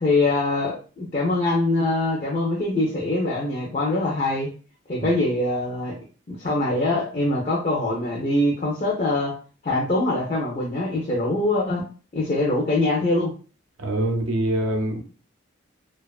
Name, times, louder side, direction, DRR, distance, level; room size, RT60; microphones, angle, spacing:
voice 1, 0.0-4.5 4.9-6.0 6.3-9.3 9.6-11.9 12.1-13.3, left 2 dB, 35° left, -4 dB, 0.5 m, -23 dB
voice 2, 13.8-15.0, right 1 dB, 75° right, 4 dB, 0.5 m, -24 dB
2.5 x 2.3 x 2.3 m, 0.38 s
head